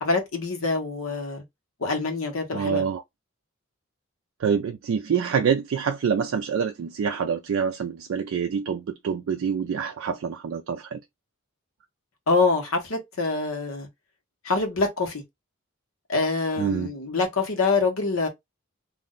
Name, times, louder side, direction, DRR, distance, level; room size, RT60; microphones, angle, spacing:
voice 1, 0.0-1.4 1.8-2.9 12.3-13.9 14.4-15.2 16.1-18.3, left 3 dB, 90° left, 1.0 m, -25 dB
voice 2, 2.5-3.0 4.4-11.0 16.6-16.9, right 6 dB, 70° right, 0.3 m, -26 dB
2.5 x 2.1 x 3.7 m
head